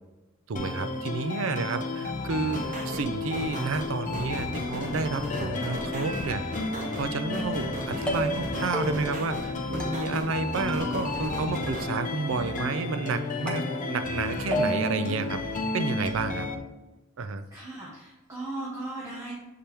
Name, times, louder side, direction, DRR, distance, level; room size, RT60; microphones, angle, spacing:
voice 1, 0.5-6.7 6.9-15.4 15.7-16.5 17.2-17.4, right 4 dB, 70° right, 11 dB, 0.5 m, -31 dB
sound 1, 0.6-16.6, left 3 dB, 40° left, 0.7 m, -32 dB
sound 2, 2.5-11.8, equal, 40° right, 1.0 m, -37 dB
sound 3, 7.4-7.7 8.1-8.5 8.7-9.2 9.8-10.4 10.7-11.3 11.7-12.2 12.6-13.1 13.5-14.2 14.5-15.0, equal, 5° left, 0.8 m, -34 dB
voice 2, 17.5-19.3, right 2 dB, 15° right, -6 dB, 1.2 m, -37 dB
6.7 x 4.4 x 3.4 m, 1.1 s
head